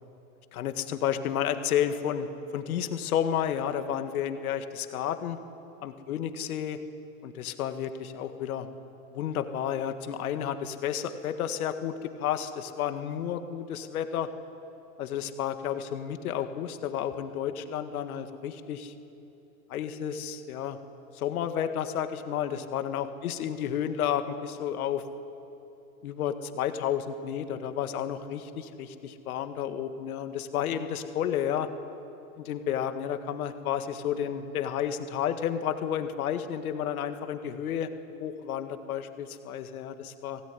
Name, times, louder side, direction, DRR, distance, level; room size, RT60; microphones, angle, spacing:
voice 1, 0.5-2.3 2.5-5.4 5.8-6.8 7.2-8.7 9.1-14.3 15.0-18.9 19.7-20.8 21.2-25.0 26.0-31.7 32.4-37.9 38.2-40.4, left 9 dB, 70° left, 8 dB, 1.9 m, -31 dB
26.0 x 18.0 x 9.8 m, 2.8 s
hypercardioid pair, 130°, 45 cm